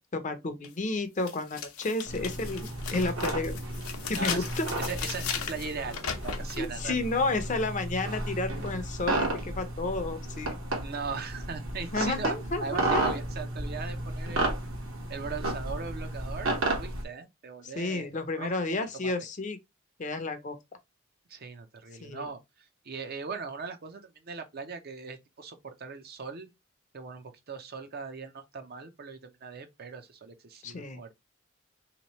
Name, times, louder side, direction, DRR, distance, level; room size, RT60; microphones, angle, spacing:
voice 1, 0.0-3.6 4.1-4.7 6.6-10.6 11.9-13.0 17.6-19.6 20.0-20.6 22.0-22.3 30.6-31.0, left 2 dB, 35° left, 0.5 m, -31 dB
sound 1, 0.6-0.7 1.2-6.7, left 7 dB, 85° left, 0.7 m, -37 dB
sound 2, 2.1-17.0, right 2 dB, 65° right, 1.1 m, -33 dB
voice 2, 4.2-4.5 4.8-7.0 10.8-12.3 12.6-14.6 15.1-19.1 21.3-26.5 26.9-31.1, right 5 dB, 45° right, 0.6 m, -39 dB
3.5 x 2.9 x 2.9 m
head